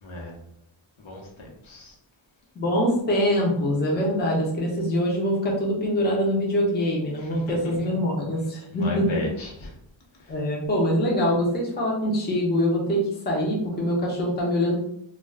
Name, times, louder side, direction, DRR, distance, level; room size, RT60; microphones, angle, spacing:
voice 1, 0.0-0.3 1.0-1.9 7.2-7.7 8.7-9.7 10.2-10.3, left 2 dB, 85° left, -1 dB, 0.9 m, -36 dB
voice 2, 2.6-9.1 10.3-14.8, equal, 20° left, -2 dB, 0.5 m, -24 dB
2.3 x 2.2 x 3.3 m, 0.71 s
wide cardioid pair, 175°, 46 cm